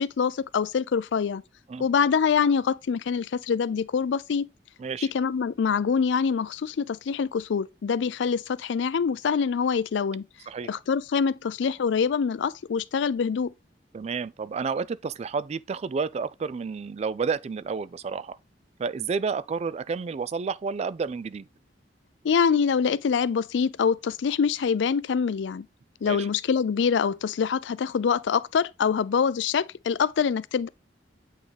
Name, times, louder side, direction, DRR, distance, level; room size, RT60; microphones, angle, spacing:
voice 1, 0.0-1.4 1.8-4.5 5.1-10.3 10.7-13.5 22.2-25.7 26.0-30.7, left 6 dB, 75° left, 0.4 m, -25 dB
voice 2, 4.8-5.1 10.5-10.7 13.9-18.4 18.8-21.5 26.0-26.3, right 5 dB, 35° right, 0.3 m, -30 dB
8.4 x 3.7 x 3.3 m
head